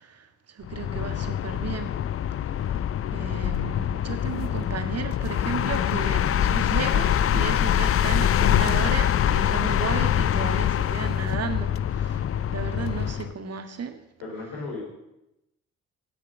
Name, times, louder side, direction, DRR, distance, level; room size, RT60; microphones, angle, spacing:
voice 1, 0.0-2.0 2.6-2.7 3.1-12.3 12.5-14.0, right 6 dB, 40° right, 8 dB, 2.0 m, -34 dB
sound 1, 0.6-13.3, left 10 dB, 35° left, 0.7 m, -24 dB
voice 2, 14.2-14.8, left 3 dB, 65° left, -3 dB, 5.1 m, -35 dB
13.5 x 10.0 x 8.7 m, 0.90 s
figure-of-eight pair, 45°, 38 cm